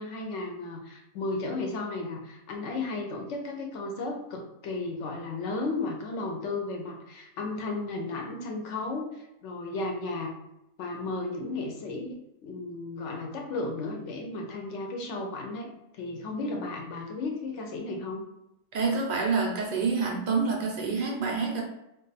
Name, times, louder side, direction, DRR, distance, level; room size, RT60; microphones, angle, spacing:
voice 1, 0.0-9.1 9.4-10.3 10.8-15.7 15.9-18.2, left 3 dB, 65° left, 2 dB, 0.8 m, -34 dB
voice 2, 18.7-21.6, right 4 dB, 60° right, -1 dB, 0.5 m, -27 dB
2.4 x 2.2 x 3.9 m, 0.87 s
omnidirectional pair, 1.5 m